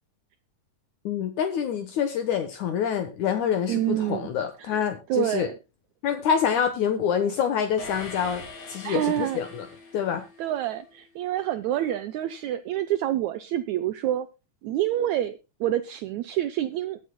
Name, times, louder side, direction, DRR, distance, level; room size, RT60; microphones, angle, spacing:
voice 1, 1.1-5.5 6.0-8.4 8.7-9.7 9.9-10.2, left 8 dB, 70° left, 7 dB, 2.4 m, -26 dB
voice 2, 3.7-4.3 4.6-4.8 5.1-5.5 8.8-9.4 10.4-14.3 14.6-17.0, right 12 dB, 75° right, 10 dB, 1.7 m, -27 dB
sound 1, 7.8-10.6, left 3 dB, 55° left, 4.1 m, -42 dB
22.0 x 7.9 x 2.2 m, 0.27 s
omnidirectional pair, 3.7 m